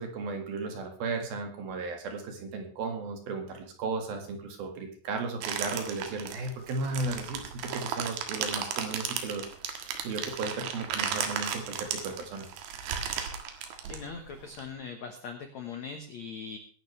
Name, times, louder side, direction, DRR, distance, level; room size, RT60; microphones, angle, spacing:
voice 1, 0.0-9.4 10.0-12.5, right 3 dB, 60° right, 4 dB, 3.5 m, -35 dB
sound 1, 5.4-14.6, right 7 dB, 80° right, 3.9 m, -35 dB
voice 2, 13.9-16.6, left 5 dB, 85° left, 6 dB, 1.5 m, -40 dB
21.0 x 11.5 x 3.3 m, 0.41 s
omnidirectional pair, 5.2 m